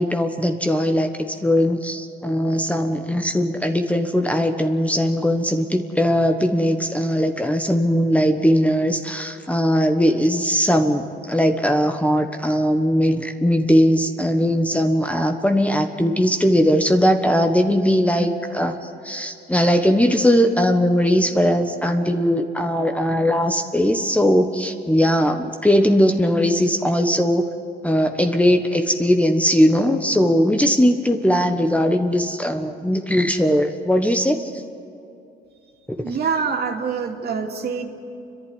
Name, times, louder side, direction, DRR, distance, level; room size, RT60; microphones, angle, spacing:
voice 1, 0.0-18.8 19.0-27.4 27.8-34.5, equal, 5° left, 5 dB, 1.2 m, -19 dB
voice 2, 36.0-37.8, right 5 dB, 55° right, 1 dB, 2.7 m, -25 dB
29.5 x 11.5 x 9.8 m, 2.6 s
cardioid pair, 90°, 20 cm